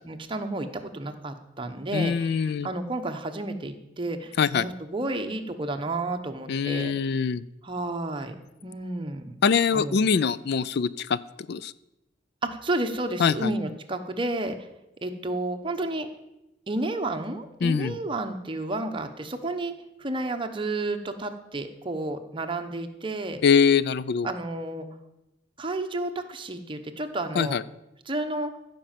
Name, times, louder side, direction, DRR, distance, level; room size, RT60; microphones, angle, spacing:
voice 1, 0.0-6.9 7.6-8.4 8.6-9.4 9.7-10.0 12.4-14.5 15.0-16.1 16.7-19.7 20.0-23.4 24.2-24.9 25.6-27.6 28.1-28.6, right 2 dB, 25° right, 6 dB, 0.9 m, -31 dB
voice 2, 1.9-2.7 4.4-4.7 6.5-7.4 9.4-11.2 11.5-11.7 13.2-13.5 17.6-18.0 23.4-24.3 27.4-27.6, left 6 dB, 60° left, 17 dB, 0.4 m, -23 dB
15.5 x 5.3 x 7.4 m, 0.93 s
head